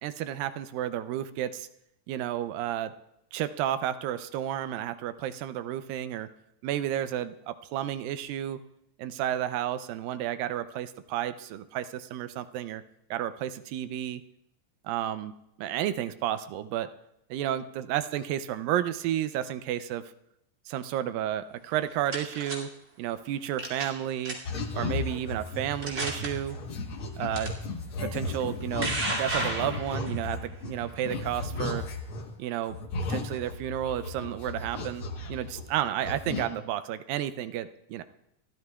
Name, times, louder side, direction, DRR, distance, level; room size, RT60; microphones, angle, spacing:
voice 1, 0.0-1.7 2.1-2.9 3.3-6.3 6.6-8.6 9.0-12.8 13.1-14.2 14.8-16.9 17.3-20.0 20.7-22.7 23.0-24.4 24.7-26.6 27.2-27.5 28.0-28.9 29.2-31.9 32.4-32.8 33.1-38.0, right 11 dB, 85° right, 12 dB, 2.4 m, -32 dB
sound 1, 21.7-22.6 23.6-24.0 24.2-24.6 25.2-25.3 25.8-26.3 27.3-27.5 28.4-30.2, right 2 dB, 25° right, 1.9 m, -32 dB
sound 2, 24.4-32.3 32.7-35.8 36.0-36.5, left 3 dB, 60° left, 1.4 m, -35 dB
29.0 x 12.5 x 2.3 m, 0.81 s
omnidirectional pair, 4.0 m